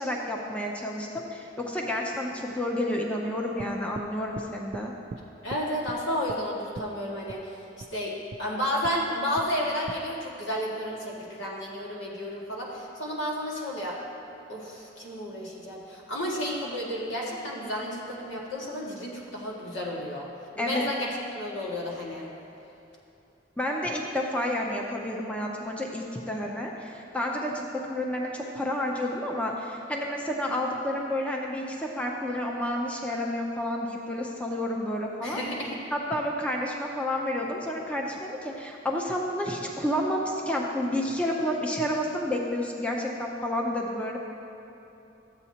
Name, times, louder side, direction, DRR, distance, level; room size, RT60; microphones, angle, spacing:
voice 1, 0.0-4.9 20.6-20.9 23.6-35.4 35.9-44.2, left 1 dB, 5° left, -1 dB, 0.6 m, -30 dB
sound 1, 3.6-4.1 4.4-4.9 5.1-5.2 5.5-6.0 6.3-6.4 6.8-6.9 7.3-7.4 7.8-7.9 8.3-8.4 8.8-9.0 9.4-9.5 9.9-10.0, right 3 dB, 40° right, 0.3 m, -40 dB
voice 2, 5.4-8.1 8.4-14.0 14.5-20.3 20.6-22.3 35.2-35.7, equal, 80° left, -4 dB, 1.8 m, -32 dB
13.5 x 8.1 x 2.9 m, 3.0 s
head